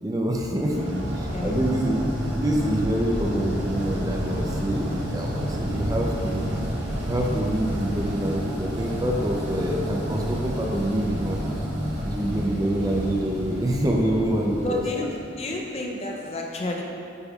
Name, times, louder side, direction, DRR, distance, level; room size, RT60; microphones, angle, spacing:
voice 1, 0.0-0.9 1.4-2.0 2.4-6.5 7.0-11.4 12.1-14.8, right 1 dB, 20° right, 0 dB, 0.5 m, -26 dB
sound 1, 0.6-15.6, equal, 70° right, 1.0 m, -30 dB
voice 2, 0.7-1.6 14.6-16.8, left 2 dB, 35° left, 0 dB, 0.5 m, -31 dB
8.3 x 5.2 x 2.4 m, 2.6 s
head